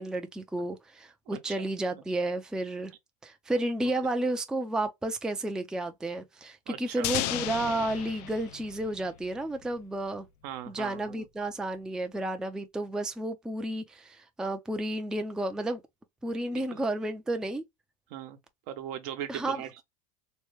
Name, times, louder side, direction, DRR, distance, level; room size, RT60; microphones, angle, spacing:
voice 1, 0.0-2.9 3.2-10.3 10.7-15.8 16.2-17.6 19.3-19.6, right 1 dB, 5° right, 0.4 m, -32 dB
voice 2, 1.3-1.7 6.7-7.1 10.4-11.3 16.4-16.8 18.1-18.4 18.7-19.8, right 11 dB, 65° right, 0.9 m, -40 dB
sound 1, 7.0-9.8, left 12 dB, 70° left, 0.5 m, -34 dB
3.1 x 2.2 x 3.1 m
supercardioid pair, 115°, 21 cm